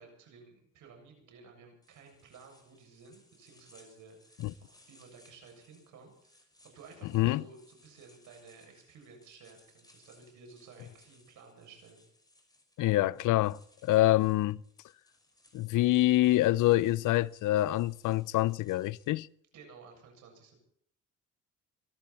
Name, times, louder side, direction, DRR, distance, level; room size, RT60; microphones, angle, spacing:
voice 1, 0.0-12.0 19.5-20.6, right 4 dB, 80° right, 7.4 m, -55 dB
sound 1, 1.8-19.3, left 1 dB, 15° left, 5.4 m, -64 dB
voice 2, 12.8-14.6 15.5-19.3, left 16 dB, 80° left, 0.6 m, -26 dB
25.0 x 13.0 x 4.4 m
cardioid pair, 90°, 30 cm